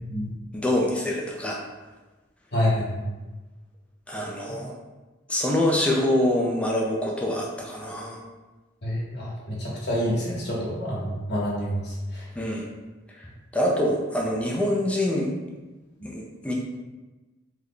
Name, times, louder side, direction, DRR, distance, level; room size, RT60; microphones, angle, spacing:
voice 1, 0.5-1.6 4.1-4.7 5.3-8.2 12.4-12.6 13.1-13.3 13.5-15.3 16.0-16.5, left 1 dB, 5° left, -2 dB, 0.4 m, -25 dB
voice 2, 2.5-3.1 8.8-11.8, equal, 60° left, -5 dB, 1.0 m, -27 dB
3.2 x 2.2 x 3.8 m, 1.2 s
head